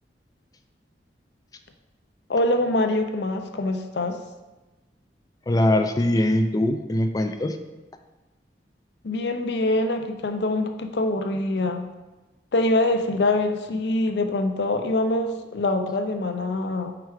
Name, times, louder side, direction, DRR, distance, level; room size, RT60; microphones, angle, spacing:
voice 1, 2.3-4.2 9.0-11.9 12.5-16.9, left 2 dB, 70° left, 6 dB, 0.6 m, -24 dB
voice 2, 5.5-7.6, left 1 dB, 20° left, 7 dB, 0.3 m, -22 dB
4.8 x 4.5 x 4.7 m, 1.1 s
head